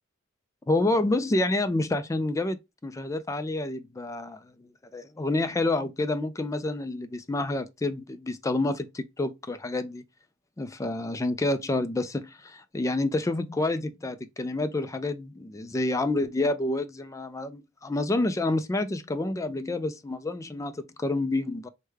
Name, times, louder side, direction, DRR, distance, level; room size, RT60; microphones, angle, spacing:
voice 1, 0.7-2.6 2.8-4.4 4.9-10.0 10.6-21.7, left 2 dB, 15° left, 0.3 m, -28 dB
3.4 x 2.2 x 3.2 m
head